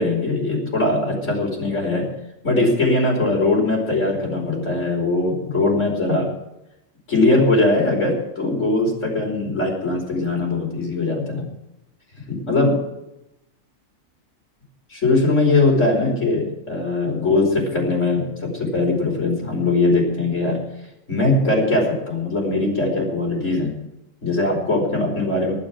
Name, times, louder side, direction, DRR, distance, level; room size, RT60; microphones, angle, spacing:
voice 1, 0.0-2.0 2.4-6.3 7.1-11.4 12.2-12.8 14.9-20.6 21.1-23.7 24.2-25.6, left 2 dB, 65° left, -2 dB, 5.4 m, -20 dB
20.0 x 7.1 x 7.4 m, 0.88 s
omnidirectional pair, 1.4 m